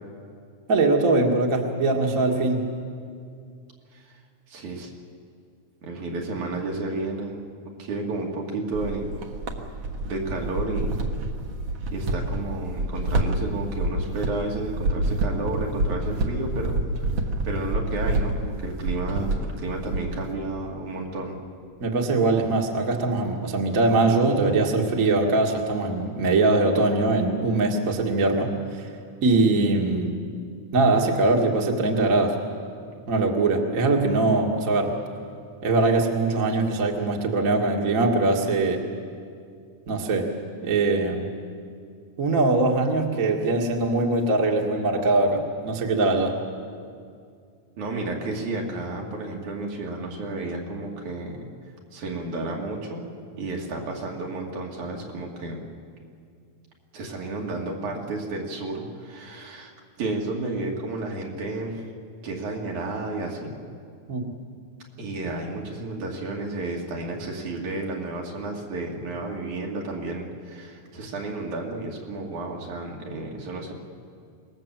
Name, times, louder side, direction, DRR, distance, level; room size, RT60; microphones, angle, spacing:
voice 1, 0.7-2.7 21.8-28.8 29.2-30.2 30.7-32.4 33.1-34.9 35.6-38.8 39.9-40.3 40.6-41.3 42.2-46.4 64.1-64.4, right 2 dB, 35° right, 1 dB, 1.7 m, -22 dB
voice 2, 4.5-4.9 5.8-9.2 10.1-10.9 11.9-16.8 17.4-21.4 47.8-51.5 51.9-53.1 53.4-55.6 56.9-59.7 60.0-61.8 62.2-63.5 65.0-73.7, right 2 dB, 75° right, -1 dB, 3.8 m, -32 dB
sound 1, 8.7-20.3, right 1 dB, 55° right, 2.2 m, -28 dB
25.5 x 19.5 x 7.5 m, 2.3 s
omnidirectional pair, 3.4 m